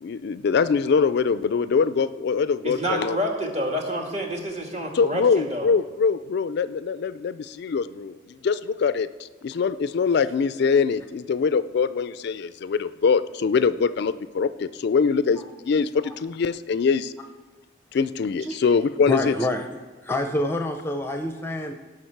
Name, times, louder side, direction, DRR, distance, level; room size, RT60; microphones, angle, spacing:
voice 1, 0.0-3.2 4.9-17.1 17.9-19.3, left 5 dB, 60° left, 14 dB, 0.3 m, -23 dB
voice 2, 2.6-5.7, equal, 35° right, 1 dB, 1.7 m, -28 dB
voice 3, 19.1-19.7 20.0-21.7, left 1 dB, 10° left, 5 dB, 0.6 m, -27 dB
18.0 x 5.9 x 4.6 m, 1.4 s
head